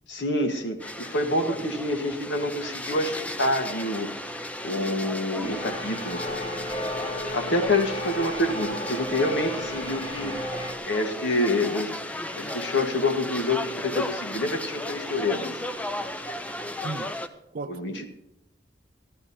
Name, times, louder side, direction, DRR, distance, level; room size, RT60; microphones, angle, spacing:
voice 1, 0.1-4.1 4.6-6.5 7.2-15.6 17.7-18.1, left 1 dB, 80° left, 1.5 m, -27 dB
sound 1, 0.8-17.3, left 1 dB, 10° left, 0.6 m, -35 dB
sound 2, 5.4-10.7, equal, 30° left, 1.4 m, -34 dB
voice 2, 17.5-18.1, right 3 dB, 50° right, 0.4 m, -36 dB
13.5 x 13.0 x 4.3 m
head